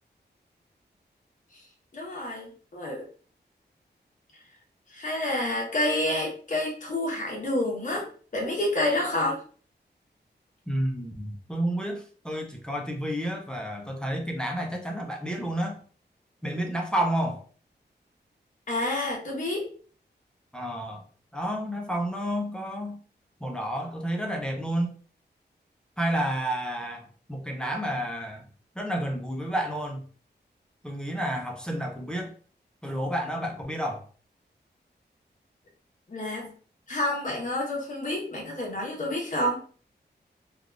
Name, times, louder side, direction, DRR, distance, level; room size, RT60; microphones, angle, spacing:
voice 1, 1.9-3.1 4.9-8.1 8.3-9.4 18.7-19.7 36.1-36.5 36.9-39.6, left 1 dB, 45° left, -2 dB, 1.1 m, -28 dB
voice 2, 10.7-15.8 16.4-17.4 20.5-21.0 21.3-23.0 23.4-24.9 26.0-28.4 28.8-30.0 30.8-32.3 32.8-34.1, right 1 dB, 5° left, 1 dB, 0.5 m, -30 dB
3.3 x 2.4 x 2.4 m, 0.42 s
wide cardioid pair, 135°, 18 cm